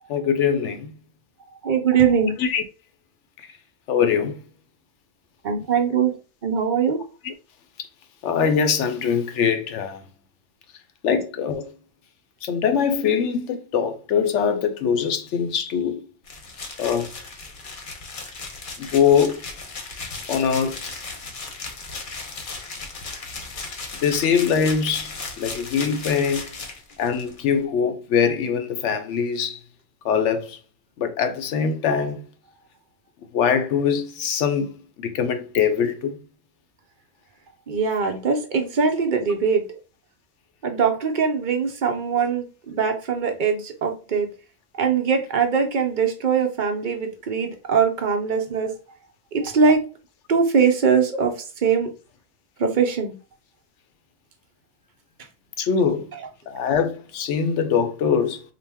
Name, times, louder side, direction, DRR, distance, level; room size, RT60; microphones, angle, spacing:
voice 1, 0.1-0.9 2.4-2.6 3.9-4.4 7.2-7.3 8.2-10.0 11.0-11.7 12.4-16.0 16.8-17.1 18.8-19.4 20.3-20.8 24.0-25.1 25.4-26.5 27.0-29.6 30.0-30.6 31.0-32.2 33.3-34.7 35.0-36.2 55.6-56.1 56.5-58.4, left 7 dB, 85° left, 0.9 m, -22 dB
voice 2, 1.6-2.3 5.4-6.2 6.4-7.0 11.1-11.2 37.7-39.8 40.6-44.3 44.8-48.8 49.3-49.8 50.3-51.9 52.6-53.2, right 6 dB, 55° right, 0.6 m, -21 dB
sound 1, 16.2-27.4, left 3 dB, 50° left, 0.8 m, -36 dB
3.9 x 2.1 x 3.4 m
omnidirectional pair, 1.2 m